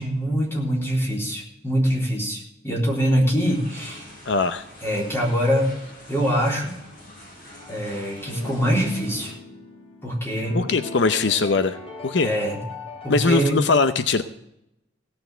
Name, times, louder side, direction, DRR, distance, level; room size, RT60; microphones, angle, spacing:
voice 1, 0.0-4.0 4.8-5.7 6.1-6.8 7.7-9.3 10.0-10.6 12.2-12.6 13.0-13.6, equal, 15° left, -2 dB, 3.7 m, -24 dB
sound 1, 3.4-9.3, left 1 dB, 45° left, 7.3 m, -45 dB
voice 2, 4.3-4.6 10.5-11.8 12.0-12.3 13.1-14.2, left 4 dB, 70° left, 11 dB, 0.7 m, -21 dB
sound 2, 7.6-13.2, left 3 dB, 30° left, 3.3 m, -39 dB
16.5 x 6.9 x 7.9 m, 0.81 s
head